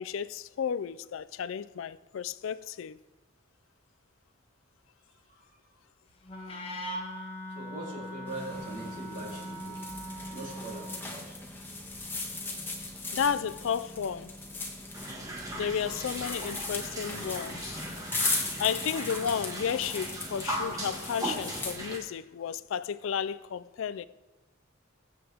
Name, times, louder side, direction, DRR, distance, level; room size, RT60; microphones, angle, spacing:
voice 1, 0.0-3.0 13.1-14.3 15.5-17.8 18.6-24.0, left 7 dB, 70° left, 0.4 m, -32 dB
voice 2, 5.2-5.8 7.5-9.9 10.3-11.4, right 2 dB, 40° right, 3.4 m, -42 dB
Wind instrument woodwind instrument, 6.2-11.1, equal, 25° left, 1.4 m, -40 dB
sound 1, 8.3-21.7, left 2 dB, 10° left, 1.3 m, -38 dB
sound 2, 14.9-22.0, right 1 dB, 15° right, 1.6 m, -38 dB
22.5 x 7.8 x 3.5 m
head